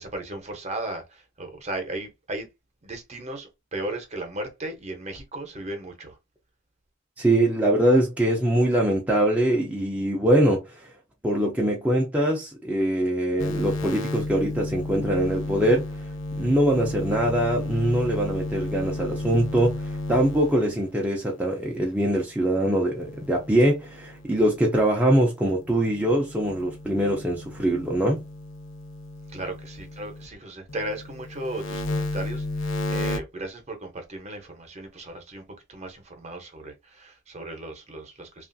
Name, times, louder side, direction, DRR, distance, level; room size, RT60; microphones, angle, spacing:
voice 1, 0.0-2.5 2.8-6.2 29.3-35.4 35.7-38.5, right 1 dB, 35° right, 0.8 m, -36 dB
voice 2, 7.2-10.9 11.2-15.9 16.4-28.2, right 1 dB, 5° right, 0.4 m, -23 dB
sound 1, 13.4-20.9 22.9-25.0 25.5-30.3 30.7-33.2, left 2 dB, 65° left, 0.6 m, -33 dB
2.9 x 2.4 x 2.6 m
head